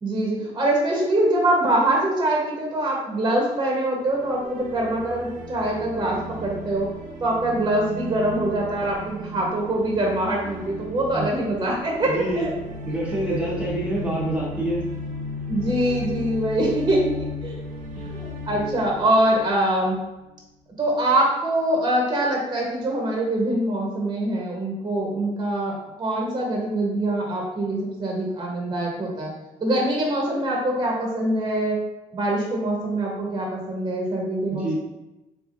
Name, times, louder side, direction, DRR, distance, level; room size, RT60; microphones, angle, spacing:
voice 1, 0.0-6.9 7.2-12.5 13.3-13.5 15.5-17.1 17.4-17.6 18.0-20.0 20.8-29.3 29.6-31.8 32.1-34.8, right 1 dB, 30° right, -2 dB, 1.0 m, -24 dB
sound 1, 4.0-20.1, left 1 dB, 80° right, 0.8 m, -36 dB
voice 2, 12.0-12.5 12.8-14.8 34.5-34.8, right 2 dB, 10° right, -6 dB, 1.1 m, -26 dB
3.4 x 3.3 x 2.6 m, 1.0 s
cardioid pair, 85°, 14 cm